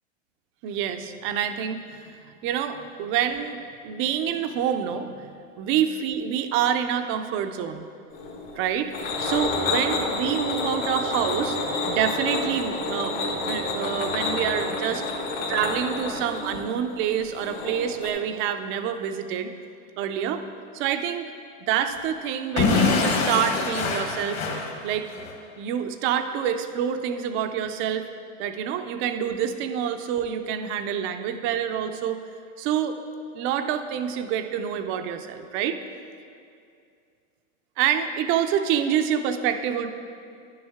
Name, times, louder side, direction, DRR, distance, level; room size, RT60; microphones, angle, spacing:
voice 1, 0.6-7.9 8.6-8.9 9.2-11.6 11.9-15.0 15.5-19.5 20.0-20.4 20.7-21.3 21.7-24.4 24.8-25.1 25.6-28.1 28.4-32.2 32.6-33.0 33.3-35.8 37.8-39.9, right 9 dB, 30° right, 8 dB, 0.4 m, -27 dB
sound 1, 8.1-18.1, left 3 dB, 60° left, 1.8 m, -29 dB
Explosion / Shatter, 22.6-25.3, left 4 dB, 35° left, 1.2 m, -24 dB
11.0 x 6.3 x 3.5 m, 2.4 s
supercardioid pair, 125°, 40 cm